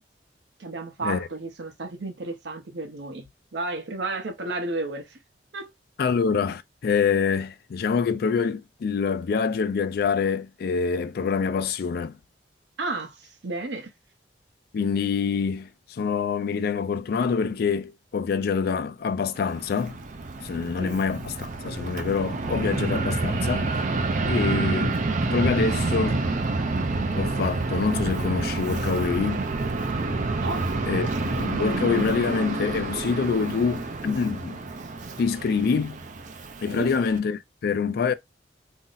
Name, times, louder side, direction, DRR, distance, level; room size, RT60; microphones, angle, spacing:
voice 1, 0.6-3.3 3.5-5.2 5.5-5.7 12.8-13.9 20.5-21.0 30.4-30.7 36.7-36.9, right 2 dB, 75° right, 0.7 m, -32 dB
voice 2, 6.0-12.2 14.7-20.0 20.4-23.7 24.2-26.2 27.2-29.5 30.9-34.6 35.2-36.0 36.6-38.1, left 5 dB, 60° left, 0.3 m, -26 dB
Fixed-wing aircraft airplane, 19.4-37.2, right 3 dB, 45° right, 0.5 m, -28 dB
2.7 x 2.0 x 3.8 m
head